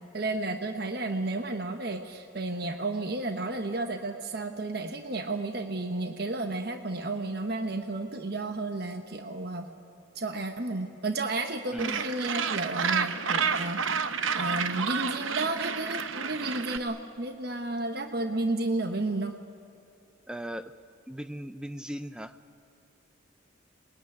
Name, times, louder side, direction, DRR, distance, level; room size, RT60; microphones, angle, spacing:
voice 1, 0.1-9.7 10.1-13.8 14.3-19.3, right 2 dB, 50° right, 6 dB, 1.2 m, -32 dB
voice 2, 11.7-12.1 20.3-20.7 21.1-22.3, equal, 5° right, 10 dB, 0.6 m, -37 dB
Gull seagull, 11.8-16.8, right 6 dB, 80° right, 0.9 m, -30 dB
25.5 x 21.0 x 9.7 m, 2.5 s
head